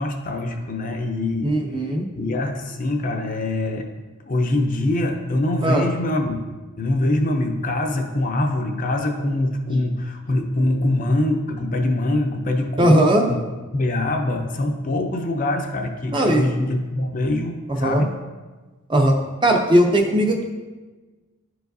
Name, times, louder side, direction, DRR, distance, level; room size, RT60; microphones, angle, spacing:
voice 1, 0.0-1.5 2.2-3.9 4.3-13.4 13.7-18.1, left 1 dB, 40° left, 3 dB, 0.5 m, -23 dB
voice 2, 1.4-2.0 5.6-5.8 12.8-13.3 16.1-16.4 17.7-18.0 18.9-19.2 19.4-20.4, right 1 dB, 20° right, 3 dB, 0.5 m, -18 dB
11.0 x 4.7 x 2.6 m, 1.3 s
head